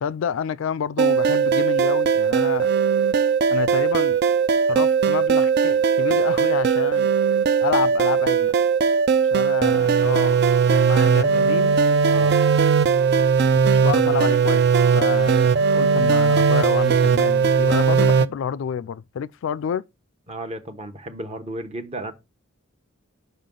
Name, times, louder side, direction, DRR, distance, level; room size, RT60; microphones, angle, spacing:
voice 1, 0.0-2.7 3.5-4.2 4.7-7.1 7.6-8.5 9.3-10.4 10.7-11.8 13.2-14.7 14.9-19.8, left 7 dB, 65° left, 0.3 m, -29 dB
sound 1, 1.0-18.3, right 6 dB, 55° right, 0.4 m, -19 dB
voice 2, 12.1-12.4 20.3-22.1, right 1 dB, 30° right, 1.0 m, -33 dB
5.7 x 5.5 x 3.7 m
head